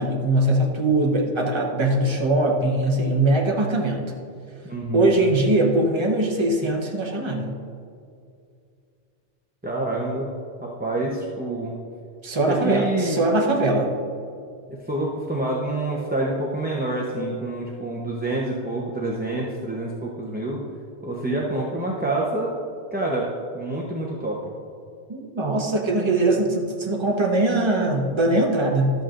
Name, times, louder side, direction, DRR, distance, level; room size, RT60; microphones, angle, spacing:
voice 1, 0.0-4.1 4.9-7.5 12.2-13.9 25.1-28.9, right 2 dB, 25° right, -1 dB, 1.0 m, -21 dB
voice 2, 4.6-5.1 9.6-10.3 10.6-11.8 12.4-13.2 14.9-20.6 21.0-22.5 22.9-23.3 23.5-24.4, right 2 dB, 10° right, -3 dB, 0.7 m, -27 dB
12.5 x 8.0 x 2.5 m, 2.4 s
omnidirectional pair, 1.2 m